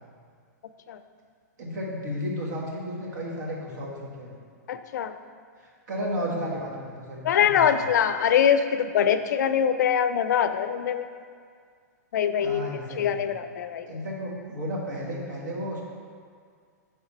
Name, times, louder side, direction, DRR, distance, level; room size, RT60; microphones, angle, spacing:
voice 1, 1.6-4.4 5.6-7.9 12.4-13.2 13.8-15.8, equal, 70° right, -2 dB, 1.5 m, -33 dB
voice 2, 4.7-5.2 7.2-11.1 12.1-12.7 13.0-13.9, left 8 dB, 75° left, 11 dB, 0.4 m, -23 dB
5.8 x 3.5 x 5.4 m, 2.1 s
hypercardioid pair, 125°, 10 cm